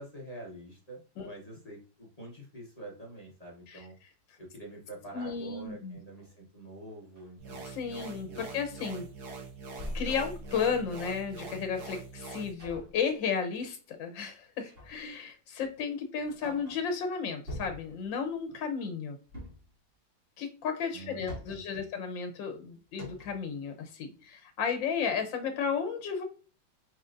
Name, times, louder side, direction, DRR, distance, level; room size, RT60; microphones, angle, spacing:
voice 1, 0.0-4.0 4.4-7.6 8.3-8.4 20.9-21.9, right 1 dB, 25° left, -3 dB, 1.0 m, -46 dB
sound 1, 4.5-4.7 5.1-6.4 6.9-7.3 7.8-8.1 8.5-9.4 9.7-11.3 12.6-13.1 14.7-15.1 15.6-15.7 16.2-17.0 17.5-18.1 19.2-19.7 20.9-21.8 22.5-22.6 22.9-23.5, left 1 dB, 30° right, 1.4 m, -44 dB
voice 2, 5.1-6.0 7.6-9.1 9.9-19.2 20.4-26.2, left 6 dB, 75° left, 6 dB, 1.6 m, -33 dB
sound 2, 7.4-12.5, right 4 dB, 60° right, 1.5 m, -44 dB
5.2 x 3.2 x 2.6 m, 0.37 s
omnidirectional pair, 2.1 m